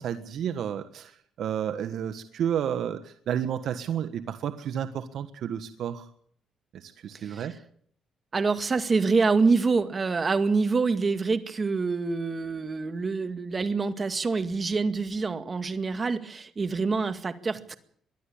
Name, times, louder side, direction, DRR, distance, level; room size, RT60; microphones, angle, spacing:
voice 1, 0.0-6.1 6.7-7.5, right 9 dB, 70° right, 10 dB, 1.4 m, -31 dB
voice 2, 8.3-17.7, right 4 dB, 35° right, 10 dB, 2.1 m, -26 dB
23.0 x 13.5 x 8.7 m, 0.62 s
cardioid pair, 90°, 0 cm